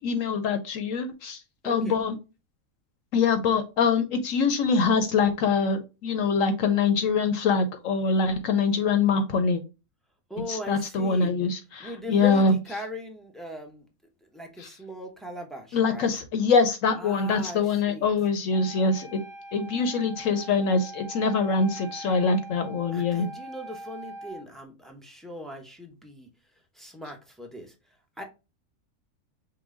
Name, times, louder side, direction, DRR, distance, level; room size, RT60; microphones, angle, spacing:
voice 1, 0.0-2.2 3.1-9.6 10.5-12.5 14.6-14.7 15.7-19.2 19.5-23.3, left 4 dB, 70° left, 8 dB, 1.0 m, -24 dB
voice 2, 1.6-2.0 10.3-11.3 11.8-13.9 14.2-16.1 16.9-18.1 22.9-26.3 26.7-28.2, equal, ahead, 2 dB, 0.5 m, -39 dB
Wind instrument woodwind instrument, 18.5-24.5, right 1 dB, 20° right, 1.4 m, -42 dB
5.7 x 2.2 x 3.6 m, 0.29 s
omnidirectional pair, 1.5 m